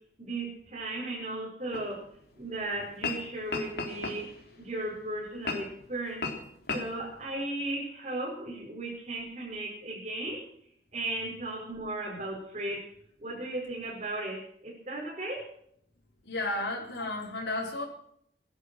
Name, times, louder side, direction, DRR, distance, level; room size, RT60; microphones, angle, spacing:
voice 1, 0.2-2.0 2.4-4.3 4.6-6.3 6.7-10.4 10.9-12.9 13.2-15.5, right 2 dB, 40° right, -6 dB, 5.4 m, -36 dB
sound 1, 1.7-1.8 2.9-3.2 3.5-4.5 5.4-5.8 6.2-6.4 6.7-6.8, left 3 dB, 60° left, 3.5 m, -33 dB
voice 2, 16.2-17.8, left 2 dB, 85° left, -2 dB, 4.6 m, -33 dB
20.0 x 11.5 x 6.2 m, 0.68 s
head